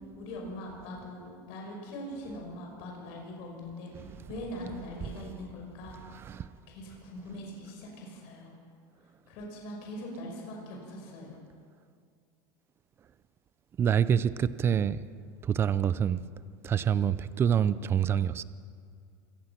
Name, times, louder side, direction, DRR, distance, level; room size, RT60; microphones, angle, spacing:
voice 1, 0.0-6.0 6.3-8.5 9.3-11.4, left 1 dB, 50° left, 0 dB, 5.6 m, -42 dB
voice 2, 13.8-15.0 15.4-16.2 16.6-18.4, right 8 dB, 20° right, 16 dB, 0.5 m, -26 dB
27.0 x 18.0 x 6.0 m, 2.3 s
supercardioid pair, 160°, 12 cm